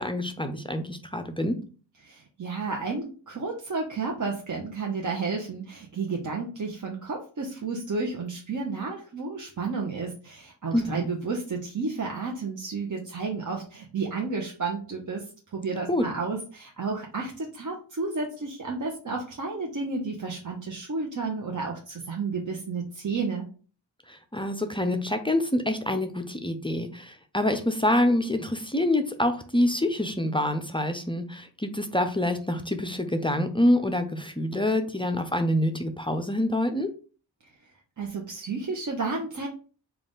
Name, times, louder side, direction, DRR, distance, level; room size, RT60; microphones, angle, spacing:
voice 1, 0.0-1.6 10.7-11.1 15.9-16.0 24.1-36.9, left 1 dB, 10° left, 6 dB, 0.4 m, -26 dB
voice 2, 2.0-15.2 15.5-23.5 38.0-39.5, right 4 dB, 45° right, 0 dB, 0.8 m, -32 dB
3.8 x 2.4 x 3.5 m, 0.37 s
wide cardioid pair, 75°, 44 cm